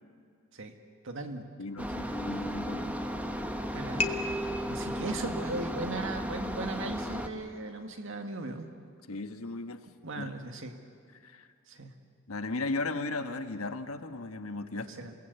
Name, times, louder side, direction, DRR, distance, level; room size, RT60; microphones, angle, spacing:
voice 1, 1.0-1.5 2.8-2.9 3.7-4.1 4.7-8.7 10.0-10.8 11.7-11.9 14.7-15.1, right 2 dB, 65° right, 5 dB, 2.0 m, -38 dB
voice 2, 1.6-3.0 9.1-9.9 10.2-10.3 11.2-11.5 12.3-14.9, left 3 dB, 90° left, 8 dB, 1.3 m, -36 dB
sound 1, 1.8-7.3, equal, 5° right, 1.1 m, -35 dB
sound 2, 2.1-3.5 4.0-6.7, left 1 dB, 30° left, 1.3 m, -37 dB
28.0 x 19.0 x 8.2 m, 2.2 s
head